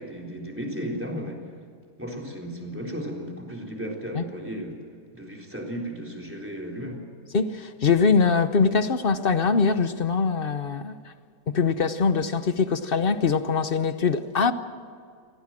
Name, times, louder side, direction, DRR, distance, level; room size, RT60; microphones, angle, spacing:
voice 1, 0.0-1.5 2.0-4.8 5.1-7.1, equal, 5° right, 3.7 m, -34 dB
voice 2, 7.3-10.9 11.5-14.5, left 5 dB, 45° left, 0.9 m, -22 dB
25.5 x 17.5 x 7.6 m
omnidirectional pair, 1.8 m